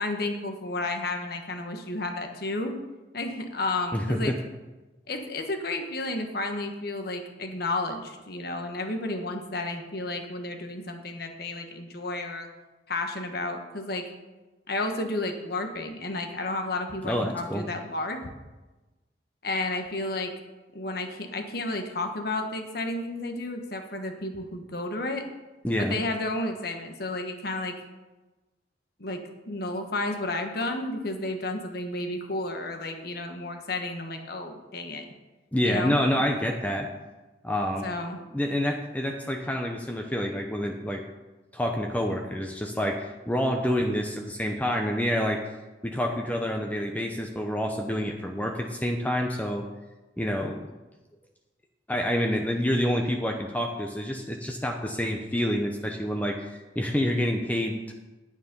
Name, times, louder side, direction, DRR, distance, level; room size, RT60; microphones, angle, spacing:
voice 1, 0.0-2.8 3.1-4.3 5.1-12.5 12.9-14.0 14.7-18.3 19.4-20.3 20.7-25.2 25.8-27.7 29.0-35.0 35.6-36.0 37.8-38.2, left 2 dB, 60° left, 5 dB, 1.5 m, -32 dB
voice 2, 3.9-4.4 17.0-17.6 25.6-26.0 35.5-36.9 37.4-37.9 38.3-41.0 41.5-45.4 45.8-49.6 50.2-50.7 51.9-57.9, equal, 10° left, 2 dB, 0.8 m, -28 dB
9.7 x 9.4 x 5.4 m, 1.1 s
head